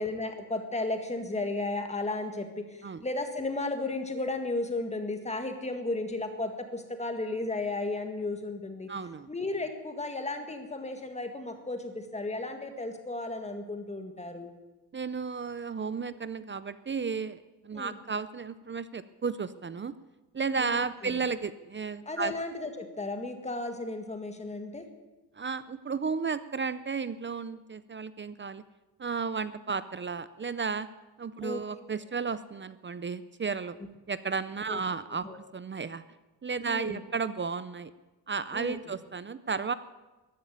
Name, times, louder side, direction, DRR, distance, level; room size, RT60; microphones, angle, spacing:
voice 1, 0.0-8.9 9.3-14.5 17.7-18.0 20.6-21.2 22.0-24.8 31.4-31.6 34.7-34.8 35.2-35.4 36.6-37.0 38.5-38.8, left 2 dB, 15° left, 6 dB, 1.8 m, -34 dB
voice 2, 8.9-9.3 14.9-19.9 20.3-22.3 25.4-28.6 29.0-30.9 31.2-33.8 34.1-36.0 36.4-37.9 38.3-39.7, right 5 dB, 30° right, 15 dB, 0.5 m, -33 dB
14.5 x 11.0 x 9.3 m, 1.1 s
wide cardioid pair, 150°, 42 cm